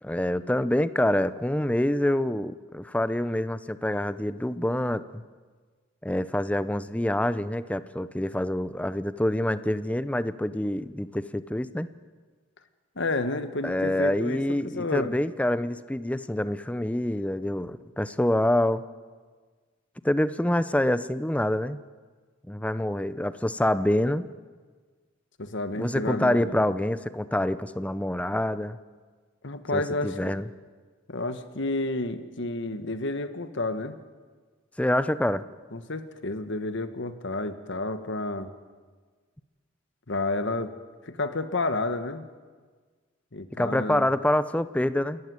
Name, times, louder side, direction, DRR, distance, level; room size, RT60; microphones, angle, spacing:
voice 1, 0.0-5.2 6.0-11.9 13.6-18.8 20.0-21.8 22.5-24.3 25.8-28.8 29.7-30.5 34.8-35.4 43.5-45.2, left 1 dB, 5° left, 14 dB, 0.6 m, -26 dB
voice 2, 12.9-15.1 25.4-26.6 29.4-30.3 31.1-34.0 35.7-38.5 40.1-40.7 41.0-42.3 43.3-44.1, left 2 dB, 65° left, 10 dB, 1.5 m, -30 dB
28.0 x 14.5 x 9.7 m, 1.5 s
head